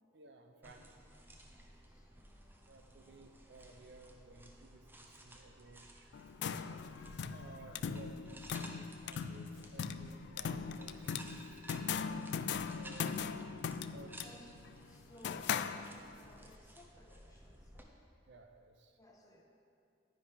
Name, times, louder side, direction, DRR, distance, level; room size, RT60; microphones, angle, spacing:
voice 1, 0.1-0.9 2.7-13.5 13.9-14.4 18.3-19.0, right 3 dB, 65° right, 5 dB, 0.6 m, -57 dB
sound 1, 0.6-17.9, right 1 dB, 10° right, 0.7 m, -56 dB
voice 2, 1.9-3.4 14.2-18.0 19.0-19.4, left 1 dB, 20° left, -1 dB, 0.9 m, -61 dB
sound 2, 6.1-16.3, left 6 dB, 65° left, 0.3 m, -40 dB
10.0 x 10.0 x 3.4 m, 2.6 s
head